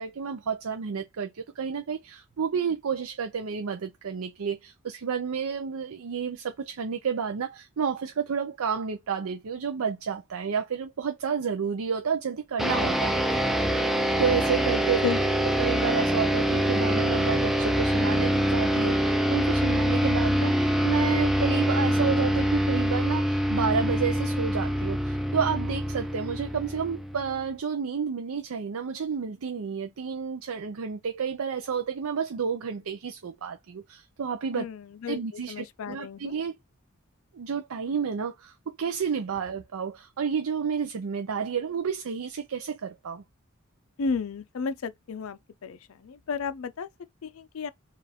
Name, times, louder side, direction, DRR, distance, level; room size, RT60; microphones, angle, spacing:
voice 1, 0.0-13.4 14.2-15.1 15.6-34.6 35.1-36.6 37.3-43.2, right 6 dB, 80° right, 0.5 m, -30 dB
sound 1, 12.6-27.4, equal, ahead, 0.3 m, -25 dB
voice 2, 34.5-35.2 35.5-36.3 44.0-46.9 47.2-47.7, left 5 dB, 70° left, 0.4 m, -32 dB
4.5 x 2.5 x 3.4 m
head